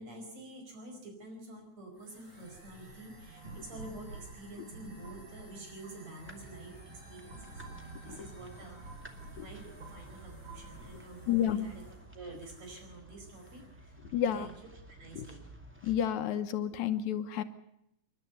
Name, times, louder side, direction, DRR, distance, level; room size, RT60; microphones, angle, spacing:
voice 1, 0.0-8.9 9.3-14.5 15.0-15.4, right 2 dB, 60° right, 3 dB, 6.3 m, -48 dB
sound 1, 1.9-12.9 13.2-13.7, right 2 dB, 20° right, 7.9 m, -56 dB
sound 2, 2.8-6.4 6.9-10.8, right 3 dB, 40° right, 7.9 m, -50 dB
sound 3, 6.2-16.1, right 2 dB, 5° right, 1.7 m, -53 dB
voice 2, 11.3-11.7 14.1-14.5 15.1-15.2 15.8-17.4, left 10 dB, 75° left, 9 dB, 2.3 m, -30 dB
28.0 x 11.5 x 8.0 m, 0.79 s
omnidirectional pair, 3.5 m